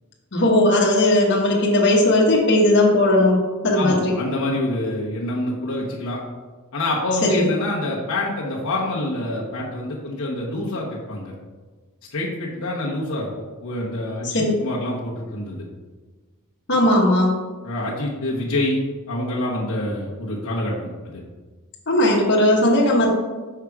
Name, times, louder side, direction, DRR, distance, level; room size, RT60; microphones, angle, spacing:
voice 1, 0.3-4.1 7.2-7.5 14.2-14.6 16.7-17.3 21.9-23.1, left 1 dB, 55° left, -2 dB, 1.2 m, -17 dB
voice 2, 3.8-6.2 6.7-11.3 12.1-13.3 13.6-15.6 17.6-18.8 19.1-21.2, left 1 dB, 75° left, -5 dB, 1.0 m, -26 dB
5.7 x 4.9 x 4.7 m, 1.3 s
head